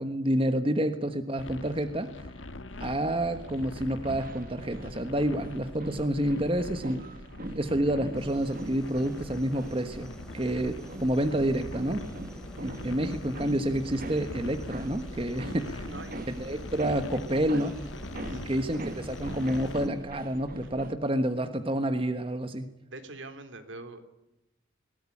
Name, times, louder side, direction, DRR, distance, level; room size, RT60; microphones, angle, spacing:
voice 1, 0.0-2.1 2.8-7.0 7.5-12.1 12.6-15.9 16.3-17.7 18.3-22.7, right 1 dB, 30° right, 8 dB, 1.3 m, -29 dB
sound 1, 1.4-19.9, left 2 dB, 80° left, 1.4 m, -43 dB
sound 2, 2.7-20.9, right 1 dB, 45° right, 1.5 m, -42 dB
sound 3, 8.1-19.9, equal, 5° left, 2.8 m, -47 dB
voice 2, 15.9-16.3 17.3-17.8 18.2-18.6 22.9-24.0, right 2 dB, 75° right, 8 dB, 3.1 m, -44 dB
21.0 x 18.0 x 10.0 m, 0.96 s
head